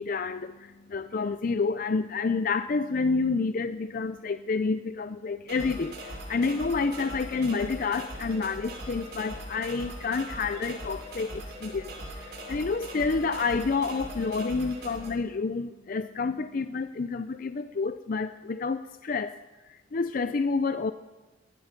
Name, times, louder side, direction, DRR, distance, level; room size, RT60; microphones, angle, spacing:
voice 1, 0.0-11.9 12.5-19.4 19.9-20.9, left 4 dB, 45° left, 11 dB, 0.5 m, -29 dB
sound 1, 5.5-15.1, right 1 dB, 55° right, 6.5 m, -40 dB
19.0 x 13.0 x 5.2 m, 1.2 s
head